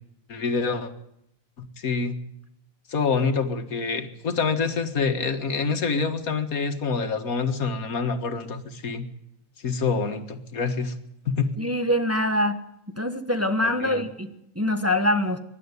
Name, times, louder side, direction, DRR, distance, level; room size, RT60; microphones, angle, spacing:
voice 1, 0.3-0.9 1.6-2.2 2.9-9.1 9.6-11.0 11.3-11.5 13.6-14.0, left 4 dB, 80° left, 8 dB, 2.1 m, -26 dB
voice 2, 11.6-12.6 13.0-15.4, left 1 dB, 10° right, 7 dB, 1.3 m, -24 dB
23.5 x 11.5 x 9.8 m, 0.79 s
omnidirectional pair, 1.5 m